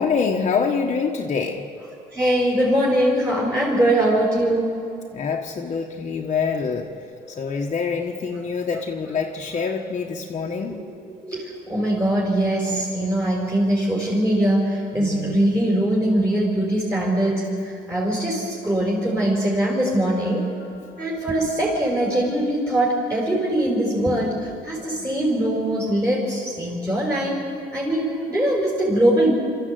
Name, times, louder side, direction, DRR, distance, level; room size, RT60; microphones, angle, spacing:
voice 1, 0.0-1.9 5.1-6.9 7.2-10.8 20.4-21.3, left 5 dB, 40° left, 0 dB, 1.4 m, -26 dB
voice 2, 2.1-4.7 10.7-10.8 11.1-20.4 21.0-24.4 24.6-27.4 27.7-29.3, right 1 dB, 20° right, -5 dB, 5.1 m, -22 dB
24.5 x 14.0 x 8.0 m, 2.7 s
cardioid pair, 110°, 17 cm